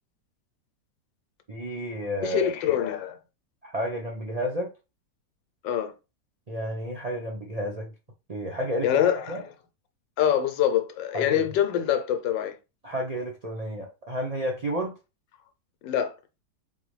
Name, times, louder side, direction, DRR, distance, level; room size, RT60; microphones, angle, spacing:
voice 1, 1.5-2.5 3.6-4.7 6.5-7.9 8.3-8.9 9.3-9.4 11.1-11.4 12.8-14.9, equal, 50° right, 0.4 m, -31 dB
voice 2, 2.2-3.2 5.6-5.9 8.8-9.4 10.2-12.6 15.8-16.1, left 10 dB, 85° left, 1.4 m, -25 dB
3.8 x 3.7 x 3.2 m
omnidirectional pair, 2.0 m